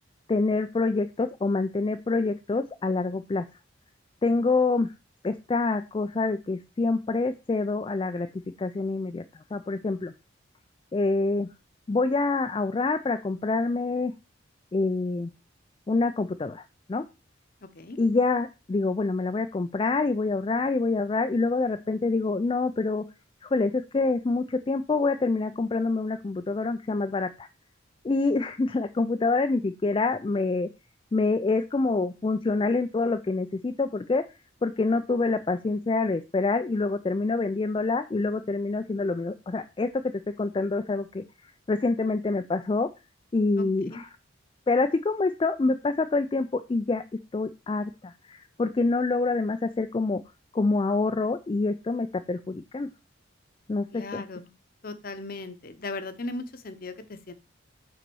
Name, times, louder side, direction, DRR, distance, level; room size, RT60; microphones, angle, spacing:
voice 1, 0.3-3.4 4.2-4.9 5.2-8.3 8.6-9.2 9.5-10.1 10.9-11.5 11.9-14.1 14.7-15.3 15.9-16.6 16.9-17.0 18.0-23.0 23.4-27.5 28.0-30.7 31.1-34.2 34.6-42.9 43.3-44.1 44.7-47.0 47.3-50.2 50.5-52.9 53.7-54.2, left 3 dB, 25° left, 7 dB, 0.3 m, -26 dB
voice 2, 43.6-44.0 53.9-54.5 54.8-57.3, left 2 dB, 45° left, 11 dB, 0.8 m, -37 dB
6.1 x 4.0 x 6.1 m, 0.28 s
head